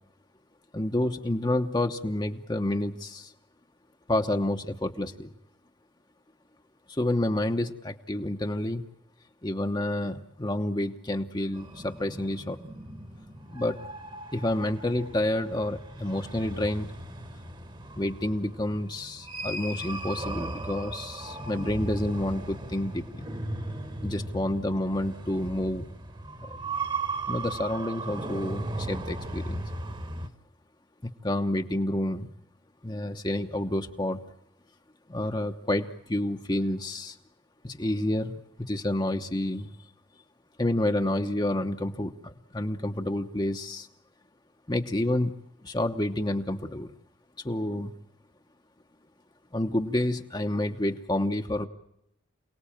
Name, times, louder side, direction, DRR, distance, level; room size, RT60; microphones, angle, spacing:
voice 1, 0.7-3.3 4.1-5.3 6.9-8.8 9.4-12.6 13.5-13.8 14.3-16.9 18.0-23.2 24.0-25.8 26.4-26.6 27.3-29.6 31.0-32.3 32.8-34.2 35.1-37.2 37.6-39.7 40.6-43.9 44.7-45.3 45.6-46.9 47.4-47.9 49.5-51.7, left 1 dB, 20° left, 5 dB, 0.9 m, -29 dB
sound 1, 11.6-30.3, right 2 dB, 20° right, 1.3 m, -37 dB
28.5 x 18.5 x 8.7 m, 0.80 s
head